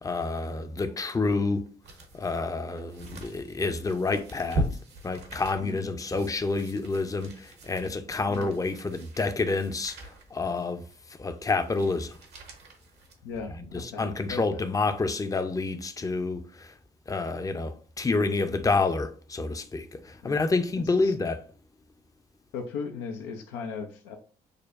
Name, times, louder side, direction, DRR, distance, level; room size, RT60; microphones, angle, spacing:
voice 1, 0.0-1.7 2.1-4.7 5.0-10.8 11.2-12.2 13.5-16.7 17.1-21.4, left 3 dB, 20° left, 0.6 m, -28 dB
sound 1, 1.1-13.7 14.2-14.3, right 1 dB, 65° right, 1.0 m, -40 dB
voice 2, 13.2-14.7 20.2-20.4 20.7-21.1 22.5-24.2, left 5 dB, 80° left, 0.6 m, -37 dB
6.4 x 2.2 x 2.5 m
hypercardioid pair, 45°, 19 cm